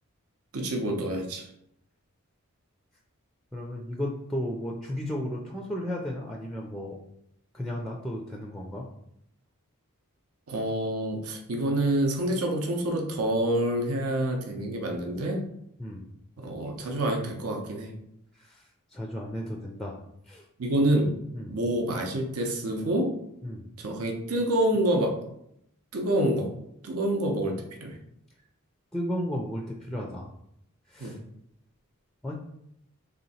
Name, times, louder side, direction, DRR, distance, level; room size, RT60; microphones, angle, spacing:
voice 1, 0.5-1.5 10.5-15.5 16.4-17.9 20.6-21.2 21.5-23.2 23.8-25.2 25.9-26.5 26.8-28.0 31.0-31.1, right 1 dB, 75° right, 2 dB, 0.7 m, -27 dB
voice 2, 3.5-7.0 7.5-8.9 15.8-16.1 18.3-20.0 20.3-20.5 21.3-21.6 23.4-23.7 28.9-30.3 30.9-31.2 32.2-32.3, equal, ahead, 0 dB, 0.4 m, -34 dB
3.4 x 2.8 x 4.1 m, 0.76 s
head